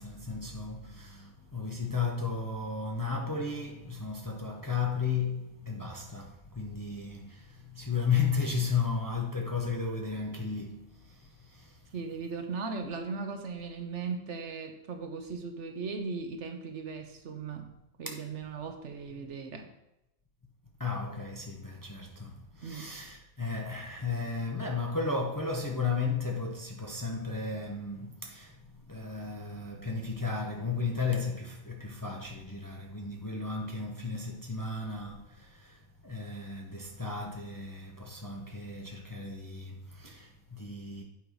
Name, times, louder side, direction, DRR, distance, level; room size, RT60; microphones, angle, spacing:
voice 1, 0.0-11.8 20.8-28.6 28.9-41.0, left 4 dB, 20° left, 0.7 m, -34 dB
voice 2, 11.9-17.7 18.0-19.7 22.6-22.9, right 4 dB, 65° right, 1.1 m, -38 dB
8.7 x 4.7 x 5.0 m
omnidirectional pair, 1.4 m